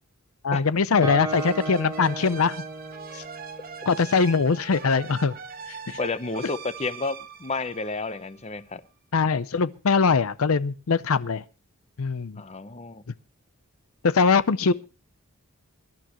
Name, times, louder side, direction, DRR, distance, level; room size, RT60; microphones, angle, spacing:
voice 1, 0.4-2.6 3.9-5.3 5.9-6.0 9.1-11.4 12.0-12.4 14.0-14.7, left 5 dB, 75° left, 0.6 m, -22 dB
Guitar, 1.0-4.7, right 3 dB, 15° right, 1.4 m, -35 dB
sound 1, 1.2-8.6, right 6 dB, 45° right, 1.0 m, -42 dB
voice 2, 6.0-8.8 12.4-13.0, left 3 dB, 30° left, 0.7 m, -31 dB
24.0 x 11.5 x 3.0 m
head